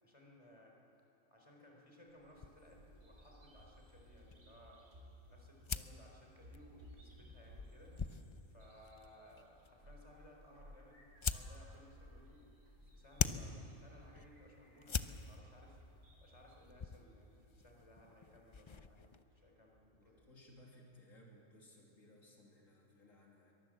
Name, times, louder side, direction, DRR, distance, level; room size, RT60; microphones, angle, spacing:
voice 1, 0.0-0.8 1.3-4.8 5.3-7.9 8.5-12.4 12.8-15.8 16.2-20.3, equal, 25° left, -1 dB, 4.0 m, -61 dB
Bird vocalization bird call bird song, 2.1-20.2, equal, 90° right, 5.2 m, -61 dB
sound 1, 2.4-19.2, left 5 dB, 50° left, 0.3 m, -46 dB
voice 2, 19.9-23.5, left 1 dB, 80° left, -2 dB, 3.1 m, -61 dB
23.0 x 18.5 x 7.7 m, 2.8 s
omnidirectional pair, 1.4 m